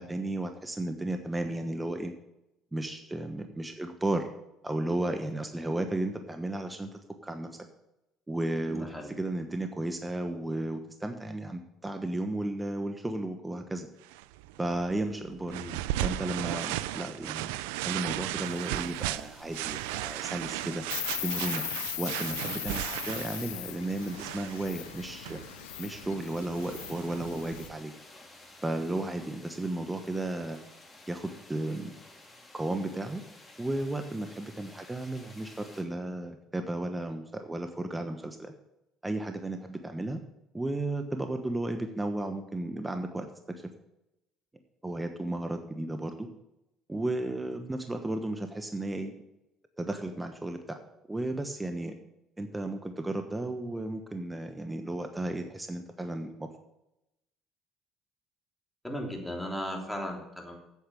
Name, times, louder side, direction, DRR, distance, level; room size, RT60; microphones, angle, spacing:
voice 1, 0.0-2.1 2.7-4.3 4.6-7.5 8.3-13.9 14.6-15.5 16.0-20.8 21.2-21.6 22.0-25.4 25.8-27.9 28.6-30.6 31.1-32.0 32.5-33.2 33.6-38.5 39.0-40.2 40.5-43.3 43.6-43.7 44.8-46.3 46.9-49.2 49.8-50.8 51.1-51.9 52.4-56.5, right 1 dB, 15° right, 6 dB, 1.2 m, -34 dB
voice 2, 8.7-9.1 15.5-15.8 58.8-60.6, equal, 5° left, 0 dB, 3.3 m, -36 dB
sound 1, 14.0-27.7, right 15 dB, 85° right, 0.3 m, -36 dB
sound 2, 18.4-35.8, left 2 dB, 20° left, 3.7 m, -53 dB
Insect, 20.9-27.7, left 16 dB, 90° left, 0.3 m, -39 dB
8.5 x 7.9 x 6.9 m, 0.88 s
hypercardioid pair, 70°, 0 cm